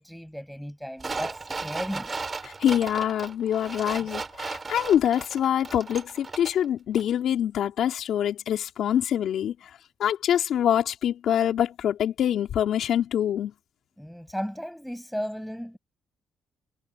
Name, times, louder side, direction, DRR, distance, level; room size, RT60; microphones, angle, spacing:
voice 1, 0.0-2.1 14.0-15.8, equal, ahead, 8.0 m, -35 dB
sound 1, 1.0-6.7 7.0-7.1, right 4 dB, 30° right, 3.9 m, -36 dB
voice 2, 2.6-9.5 10.0-13.5, left 10 dB, 70° left, 4.2 m, -25 dB
cardioid pair, 90°, 0 cm